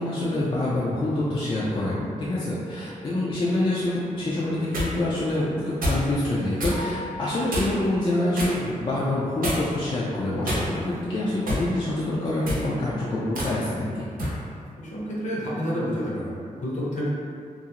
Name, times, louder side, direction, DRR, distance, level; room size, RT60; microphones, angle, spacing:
voice 1, 0.0-14.1, left 1 dB, 35° left, -8 dB, 0.4 m, -26 dB
sound 1, 4.4-4.9 5.8-6.1 6.6-6.8 7.5-7.8 8.3-8.6 9.4-9.8 10.4-11.0 11.5-11.7 12.3-12.7 13.3-13.5 14.2-14.4, equal, 80° right, 0.7 m, -27 dB
sound 2, 6.7-7.8, left 2 dB, 30° right, 0.6 m, -37 dB
voice 2, 14.8-17.1, equal, 60° left, -7 dB, 0.8 m, -29 dB
2.4 x 2.0 x 2.8 m, 2.4 s
cardioid pair, 85°, 14 cm